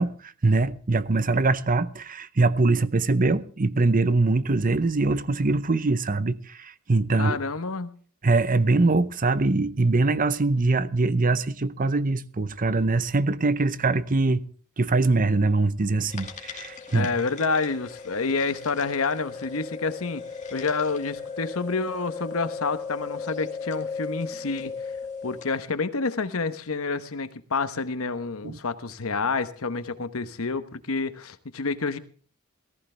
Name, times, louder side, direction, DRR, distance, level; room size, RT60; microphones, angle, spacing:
voice 1, 0.0-7.4 8.2-14.4 14.8-17.1 28.4-28.6, right 3 dB, 40° right, 0.7 m, -23 dB
voice 2, 7.2-7.9 16.9-20.2 20.5-24.7 25.2-32.0, left 4 dB, 75° left, 1.1 m, -28 dB
sound 1, 16.1-25.6, left 5 dB, 35° left, 2.3 m, -37 dB
18.5 x 14.5 x 3.4 m
head